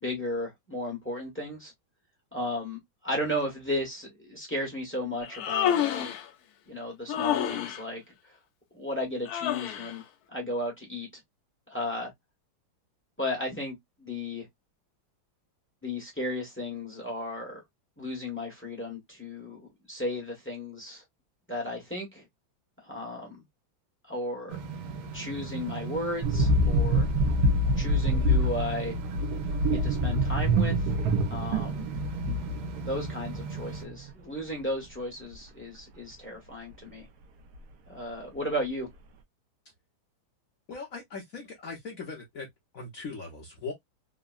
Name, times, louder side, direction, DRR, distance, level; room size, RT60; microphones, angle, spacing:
voice 1, 0.0-1.7 2.3-6.1 6.7-8.0 8.7-10.0 10.3-11.1 11.7-12.1 13.2-14.5 15.8-17.6 18.0-21.0 21.5-22.2 22.8-23.4 24.1-24.6 25.1-27.1 27.8-29.0 29.6-30.9 31.3-31.8 32.8-37.1 37.9-38.9, left 1 dB, 10° left, 0.6 m, -34 dB
Human voice, 5.2-6.3 7.1-7.8 9.3-10.0, left 10 dB, 90° left, 0.8 m, -28 dB
sound 1, 24.5-33.8, right 6 dB, 85° right, 1.5 m, -38 dB
sound 2, 26.2-33.6 33.9-34.1, equal, 70° right, 1.0 m, -26 dB
voice 2, 40.7-42.5 42.7-43.7, left 4 dB, 60° left, 0.9 m, -39 dB
3.6 x 2.0 x 2.3 m
omnidirectional pair, 2.2 m